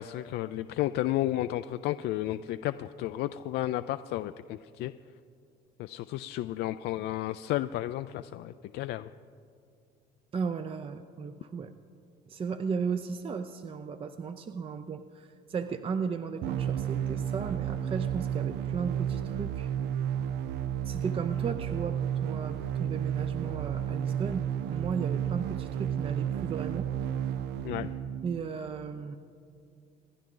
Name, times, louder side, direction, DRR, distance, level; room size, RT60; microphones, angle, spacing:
voice 1, 0.0-4.9 5.8-9.1 27.6-27.9, left 14 dB, 75° left, 11 dB, 0.4 m, -32 dB
voice 2, 10.3-11.7 12.3-19.7 20.8-26.9 28.2-29.2, right 5 dB, 35° right, 9 dB, 0.5 m, -35 dB
sound 1, 16.4-28.4, right 9 dB, 85° right, 0.6 m, -32 dB
26.5 x 10.5 x 3.9 m, 2.3 s
cardioid pair, 110°, 17 cm